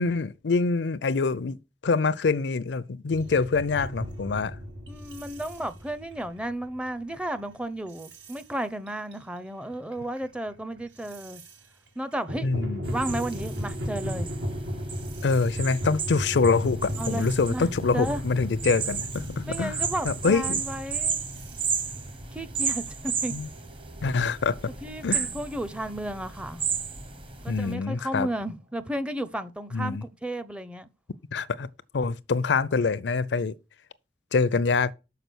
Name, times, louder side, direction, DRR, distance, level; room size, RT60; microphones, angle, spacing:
voice 1, 0.0-1.6 1.8-4.6 12.4-12.8 15.2-19.7 20.1-20.6 23.3-23.5 24.0-24.7 25.0-25.3 27.5-28.3 29.7-30.0 31.3-33.5 34.3-34.9, left 4 dB, 70° left, 0.5 m, -25 dB
sound 1, 3.1-7.4 7.9-8.4 8.9-9.2 9.7-11.6 12.1-22.9, equal, 80° right, 2.2 m, -36 dB
voice 2, 4.9-11.4 12.0-12.5 12.9-14.3 17.0-18.2 19.4-21.2 22.3-23.3 24.8-26.6 27.4-30.9, right 1 dB, 5° right, 0.5 m, -33 dB
sound 2, 12.8-27.7, right 6 dB, 30° right, 0.9 m, -34 dB
sound 3, 14.6-29.1, left 1 dB, 50° right, 1.5 m, -47 dB
6.7 x 4.8 x 6.1 m
head